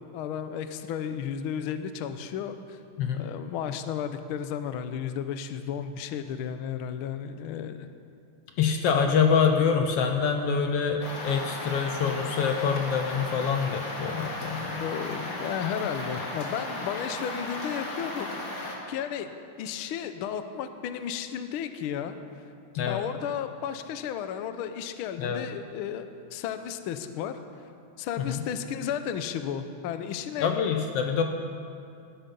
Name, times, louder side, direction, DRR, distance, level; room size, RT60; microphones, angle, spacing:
voice 1, 0.1-2.8 3.2-7.9 14.8-18.3 18.6-19.3 19.6-22.2 22.9-27.4 28.0-30.5, left 8 dB, 85° left, 9 dB, 1.2 m, -33 dB
voice 2, 8.6-14.8 22.7-23.0 25.2-25.4 28.3-28.4 30.4-31.2, left 6 dB, 70° left, 4 dB, 1.6 m, -25 dB
sound 1, 11.0-18.8, left 1 dB, 50° left, 2.6 m, -35 dB
18.5 x 11.5 x 5.4 m, 2.5 s
omnidirectional pair, 3.3 m